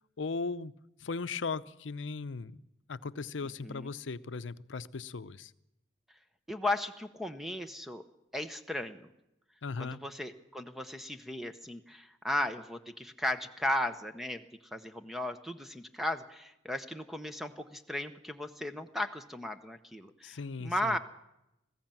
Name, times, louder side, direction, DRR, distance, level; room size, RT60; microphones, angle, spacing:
voice 1, 0.2-0.7 1.0-2.6 2.9-5.5 9.6-10.0 20.2-21.0, left 4 dB, 90° left, 15 dB, 0.6 m, -37 dB
voice 2, 6.5-8.0 8.3-9.1 9.8-14.4 14.7-21.0, left 1 dB, ahead, 8 dB, 0.8 m, -36 dB
20.0 x 15.0 x 9.0 m, 0.89 s
head